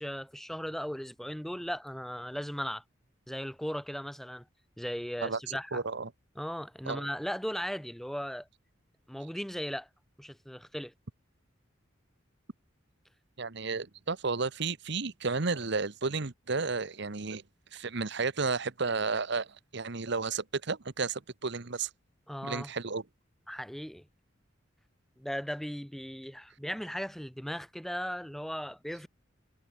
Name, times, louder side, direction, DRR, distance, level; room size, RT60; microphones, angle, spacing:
voice 1, 0.0-2.8 3.3-4.4 4.8-5.8 6.4-8.5 9.1-9.9 10.2-10.9 22.3-22.7 23.5-24.1 25.2-29.1, equal, ahead, 1.3 m, -37 dB
voice 2, 5.2-6.1 6.8-7.0 13.4-17.4 17.7-21.9 22.4-23.0, right 4 dB, 65° right, 1.2 m, -32 dB
head